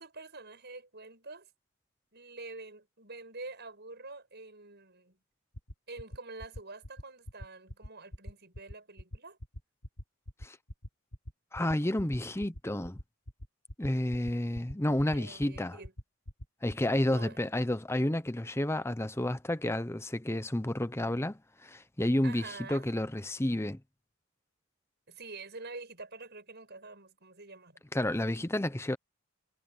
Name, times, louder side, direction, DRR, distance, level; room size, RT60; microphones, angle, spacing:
voice 1, 0.0-1.5 2.1-5.2 5.9-9.4 15.1-15.9 17.0-17.4 22.2-22.9 25.1-27.8, right 3 dB, 50° right, 7.5 m, -46 dB
sound 1, 5.5-16.9, equal, 85° left, 7.9 m, -43 dB
voice 2, 11.5-13.0 13.8-15.8 16.6-23.8 27.9-29.0, left 1 dB, 10° left, 0.7 m, -31 dB
head